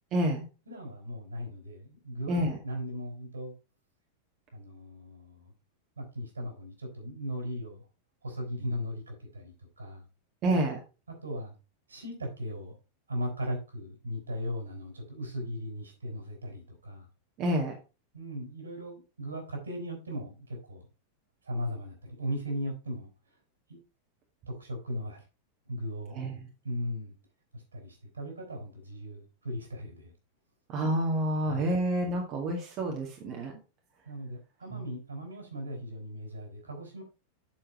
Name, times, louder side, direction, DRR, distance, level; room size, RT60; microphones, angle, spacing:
voice 1, 0.1-0.5 2.3-2.6 10.4-10.8 17.4-17.8 26.1-26.5 30.7-33.5, right 1 dB, 35° right, 1 dB, 2.1 m, -28 dB
voice 2, 0.7-3.5 4.5-5.5 6.0-7.8 8.2-10.0 11.1-11.5 11.9-12.7 13.1-17.1 18.1-20.9 21.4-23.1 23.7-23.8 24.5-25.2 25.7-26.1 26.6-27.1 27.5-30.1 31.4-31.8 34.0-37.0, equal, 75° right, 3 dB, 4.8 m, -38 dB
7.9 x 7.3 x 4.4 m, 0.31 s
figure-of-eight pair, 90°, 0 cm